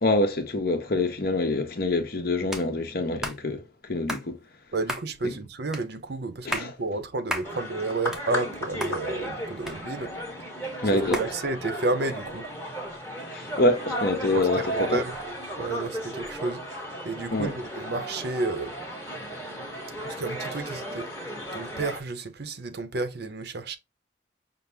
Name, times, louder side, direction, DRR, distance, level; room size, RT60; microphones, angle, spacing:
voice 1, 0.0-4.4 5.2-5.3 6.4-6.7 10.8-11.2 13.3-15.0 17.3-17.5, left 2 dB, 55° left, 0.9 m, -26 dB
single person clap quicker, 2.5-2.7 3.2-3.4 4.1-4.3 4.9-5.1 5.7-5.9 6.3-6.7 7.3-7.5 7.9-8.5 8.8-9.0 9.7-10.2 11.1-11.3, equal, 5° right, 0.6 m, -32 dB
voice 2, 4.7-10.1 10.9-12.5 14.3-15.1 15.6-18.7 20.0-21.1 21.5-23.8, right 2 dB, 55° right, 0.6 m, -31 dB
sound 1, 7.4-22.0, equal, 15° left, 1.1 m, -35 dB
5.8 x 2.0 x 3.3 m
head